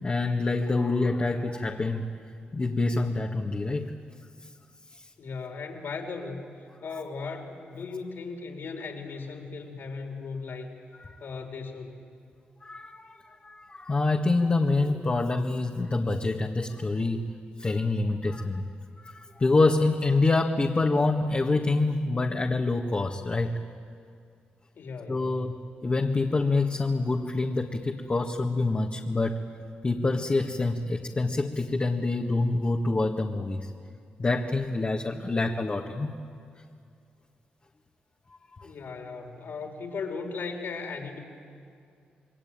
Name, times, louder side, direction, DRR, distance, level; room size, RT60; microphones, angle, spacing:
voice 1, 0.0-2.1 2.5-4.0 4.9-5.1 11.0-11.3 12.6-18.6 19.0-23.6 25.1-29.4 29.8-33.7 34.2-36.1 38.6-38.7, left 3 dB, 35° left, 1 dB, 1.8 m, -26 dB
voice 2, 5.2-10.7 11.2-12.0 24.8-25.4 38.6-41.2, left 4 dB, 70° left, 3 dB, 4.3 m, -37 dB
27.5 x 22.0 x 9.0 m, 2.4 s
cardioid pair, 60°, 4 cm